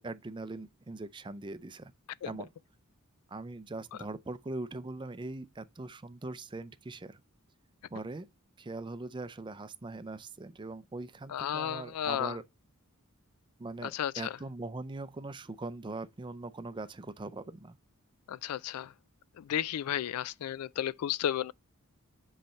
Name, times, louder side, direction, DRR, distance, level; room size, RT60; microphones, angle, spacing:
voice 1, 0.0-1.9 2.2-2.5 3.3-7.2 7.9-8.3 8.6-12.4 13.6-17.8, right 2 dB, 20° right, 0.5 m, -41 dB
voice 2, 11.3-12.4 13.8-14.4 18.3-18.9 19.4-21.5, left 10 dB, 80° left, 0.3 m, -33 dB
7.9 x 3.2 x 4.2 m
head